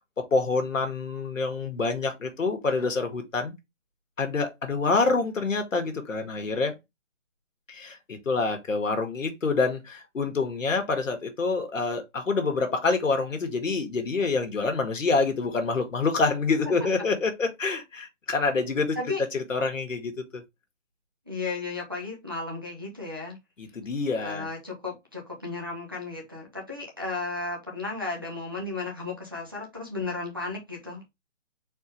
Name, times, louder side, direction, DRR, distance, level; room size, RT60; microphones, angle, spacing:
voice 1, 0.2-3.5 4.2-6.7 7.7-19.0 19.3-20.4 23.6-24.5, left 4 dB, 90° left, 1.6 m, -27 dB
voice 2, 21.3-23.4 24.2-31.0, left 3 dB, 20° right, 0.6 m, -34 dB
4.2 x 3.7 x 2.9 m
hypercardioid pair, 170°, 37 cm